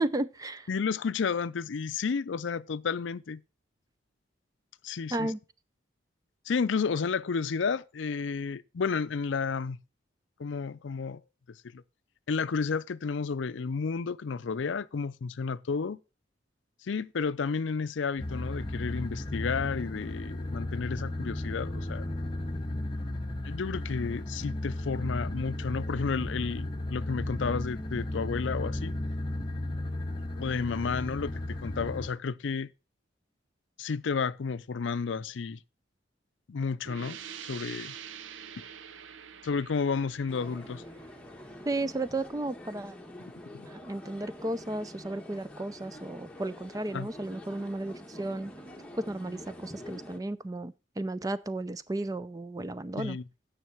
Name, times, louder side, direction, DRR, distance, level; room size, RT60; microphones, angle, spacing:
voice 1, 0.0-0.7 5.1-5.4 41.7-43.0 43.7-48.5 49.0-53.2, right 2 dB, 20° right, 0.4 m, -34 dB
voice 2, 0.7-3.4 4.8-5.3 6.5-9.8 10.4-11.2 11.5-11.8 12.3-16.0 16.8-22.0 23.4-28.9 30.4-32.7 33.8-35.6 36.5-37.2 37.5-38.0 38.6-38.7 39.4-40.8 43.5-43.7 46.9-47.1 53.0-53.2, left 5 dB, 75° left, 0.5 m, -32 dB
sound 1, 18.2-32.1, left 1 dB, 25° left, 0.9 m, -34 dB
sound 2, 36.8-42.3, right 8 dB, 80° right, 0.7 m, -46 dB
sound 3, 40.3-50.2, left 1 dB, 5° left, 1.2 m, -46 dB
9.5 x 6.4 x 5.9 m
head